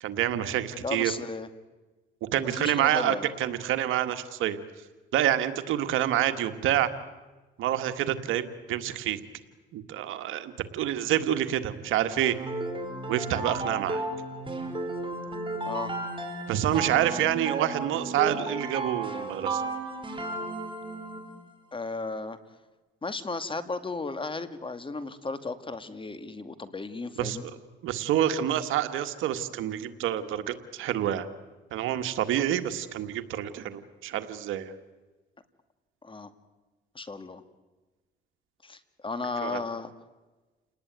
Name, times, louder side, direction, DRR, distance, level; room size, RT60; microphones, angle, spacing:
voice 1, 0.0-1.1 2.3-4.6 5.1-6.9 7.6-9.2 9.7-12.4 13.1-14.0 16.5-19.6 27.2-27.4 27.8-31.3 31.7-34.7 39.4-39.6, right 11 dB, 90° right, 9 dB, 1.8 m, -27 dB
voice 2, 0.8-1.5 2.4-3.3 15.7-15.9 21.7-22.4 23.0-27.5 36.0-36.3 36.9-37.4 38.6-39.9, left 3 dB, 25° left, 11 dB, 2.1 m, -35 dB
sound 1, 12.2-21.4, right 2 dB, 25° right, 4.9 m, -34 dB
29.5 x 19.5 x 9.5 m, 1.2 s
cardioid pair, 90°, 20 cm